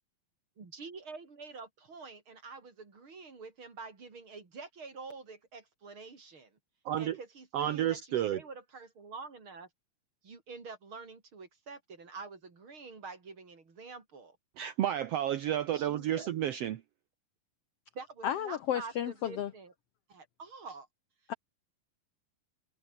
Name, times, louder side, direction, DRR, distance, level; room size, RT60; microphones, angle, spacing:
voice 1, 0.6-6.6 7.0-9.7 10.2-14.4 15.7-16.3 17.9-19.7 20.1-20.9, right 4 dB, 35° right, 4.3 m, -47 dB
voice 2, 6.8-7.2 7.5-8.4 14.6-16.8, right 11 dB, 75° right, 1.4 m, -31 dB
voice 3, 18.2-19.5 21.3-21.4, left 10 dB, 80° left, 1.3 m, -32 dB
omnidirectional pair, 4.1 m